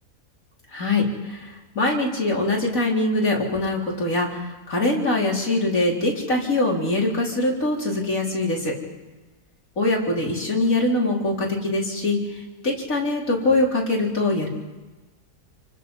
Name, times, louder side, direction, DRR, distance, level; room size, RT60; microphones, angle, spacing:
voice 1, 0.7-8.7 9.8-14.5, left 2 dB, 55° left, -2 dB, 4.6 m, -23 dB
29.0 x 24.5 x 5.5 m, 1.2 s
omnidirectional pair, 1.7 m